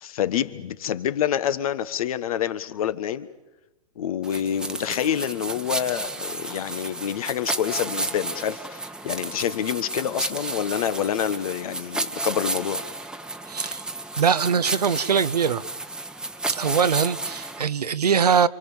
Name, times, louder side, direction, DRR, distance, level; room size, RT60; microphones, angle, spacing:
voice 1, 0.0-3.3 4.0-12.8, left 10 dB, 65° left, 1.5 m, -27 dB
sound 1, 4.2-17.7, right 2 dB, 5° right, 1.1 m, -32 dB
voice 2, 13.5-13.8 14.2-15.6 16.5-18.5, right 7 dB, 90° right, 1.0 m, -22 dB
28.5 x 24.5 x 7.3 m
hypercardioid pair, 120°, 20 cm